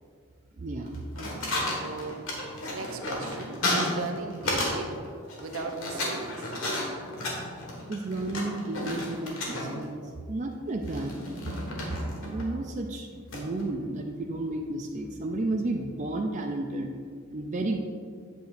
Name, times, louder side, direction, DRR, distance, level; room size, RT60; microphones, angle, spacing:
voice 1, 0.6-1.5 7.9-10.0 10.3-11.2 11.9-16.9 17.3-17.8, right 2 dB, 35° right, 2 dB, 0.4 m, -32 dB
sound 1, 0.9-4.8 5.0-9.8 10.8-12.4 13.3-13.6, left 1 dB, 65° left, 1.6 m, -32 dB
voice 2, 1.7-2.3 2.7-5.0 5.4-6.5, right 3 dB, 70° right, 4 dB, 0.7 m, -37 dB
8.2 x 8.1 x 2.5 m, 2.1 s
head